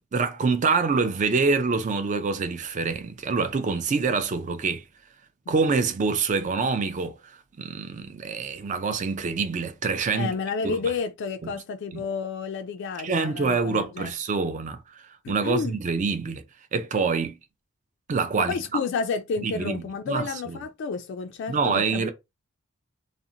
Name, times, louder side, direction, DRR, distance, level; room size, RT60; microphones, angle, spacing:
voice 1, 0.0-4.8 5.5-10.3 10.6-10.8 11.4-11.5 11.9-12.0 13.0-16.4 16.7-17.4 18.1-18.8 19.4-20.6 21.5-22.1, right 4 dB, 35° right, 0.4 m, -26 dB
voice 2, 10.1-14.1 15.2-15.8 18.4-22.1, left 5 dB, 60° left, 0.3 m, -31 dB
2.5 x 2.1 x 2.7 m
head